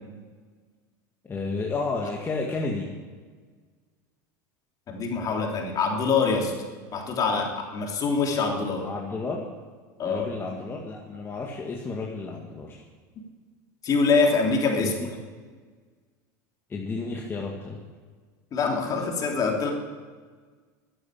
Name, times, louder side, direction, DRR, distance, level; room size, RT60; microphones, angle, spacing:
voice 1, 1.2-2.9 8.8-9.5 10.1-12.8 14.8-15.1 16.7-17.8, left 3 dB, 25° left, -1 dB, 1.9 m, -32 dB
voice 2, 4.9-6.5 6.9-8.8 10.0-10.3 13.8-15.1 18.5-19.7, left 4 dB, 40° left, 0 dB, 3.3 m, -24 dB
11.5 x 9.0 x 10.0 m, 1.5 s
supercardioid pair, 105°, 10 cm